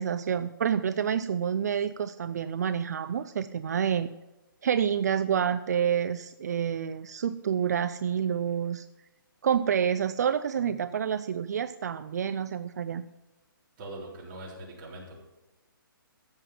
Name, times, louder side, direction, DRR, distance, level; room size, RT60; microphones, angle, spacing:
voice 1, 0.0-4.1 4.6-8.9 9.4-13.0, right 8 dB, 50° right, 12 dB, 0.5 m, -28 dB
voice 2, 13.8-15.2, right 1 dB, 25° right, -4 dB, 3.9 m, -42 dB
15.0 x 5.8 x 7.0 m, 1.0 s
hypercardioid pair, 170°, 12 cm